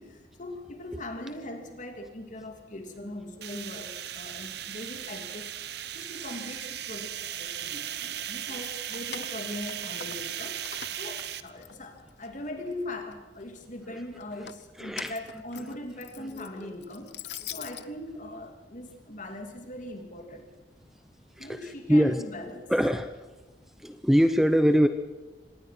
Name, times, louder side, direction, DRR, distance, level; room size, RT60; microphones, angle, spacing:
voice 1, 0.0-10.6 11.0-17.2 17.5-20.5 21.4-22.7, left 1 dB, 45° left, 5 dB, 3.0 m, -40 dB
sound 1, 3.4-11.4, right 11 dB, 65° right, 0.9 m, -37 dB
Keys jangling, 8.4-10.4 10.7-12.3 12.7-13.4 14.2-17.9, left 10 dB, 70° left, 0.8 m, -44 dB
voice 2, 14.8-15.1 16.4-16.5 21.4-21.6 21.9-22.2 22.7-23.1 23.8-24.9, equal, ahead, 9 dB, 0.7 m, -23 dB
26.0 x 19.0 x 6.1 m, 1.2 s
head